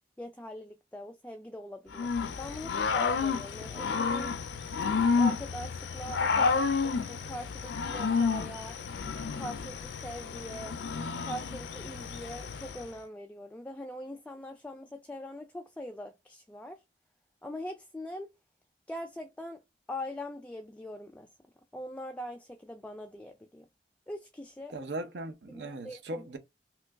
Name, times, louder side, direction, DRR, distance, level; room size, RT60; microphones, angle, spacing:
voice 1, 0.2-4.3 5.2-8.8 9.3-10.8 11.3-16.8 17.4-18.3 18.9-19.6 19.9-21.3 21.7-23.7 24.1-24.7 25.5-26.4, equal, 10° left, 0.3 m, -42 dB
Growling / Cricket, 1.9-12.9, left 5 dB, 85° left, 0.4 m, -30 dB
voice 2, 24.7-26.4, right 2 dB, 70° right, 0.6 m, -38 dB
3.0 x 2.2 x 3.4 m
head